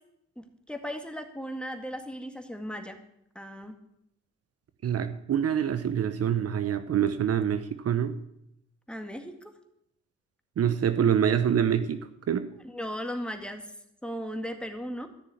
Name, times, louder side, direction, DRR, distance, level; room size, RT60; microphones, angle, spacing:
voice 1, 0.4-3.0 3.4-3.8 8.9-9.5 12.6-13.7 14.0-15.1, equal, 5° left, 5 dB, 1.9 m, -37 dB
voice 2, 4.8-8.2 10.6-12.0 12.3-12.5, right 9 dB, 55° right, 11 dB, 1.0 m, -25 dB
13.5 x 6.8 x 9.5 m, 0.79 s
cardioid pair, 90°, 30 cm